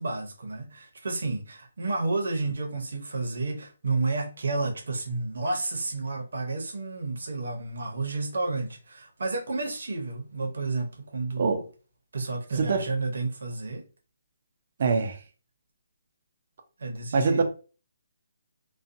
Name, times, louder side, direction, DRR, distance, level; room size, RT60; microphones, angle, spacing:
voice 1, 0.0-11.6 12.1-13.8 16.8-17.4, right 3 dB, 75° right, 0.7 m, -31 dB
voice 2, 12.5-12.9 14.8-15.2 17.1-17.4, right 4 dB, 45° right, 0.5 m, -24 dB
2.5 x 2.2 x 2.5 m
hypercardioid pair, 170°, 0 cm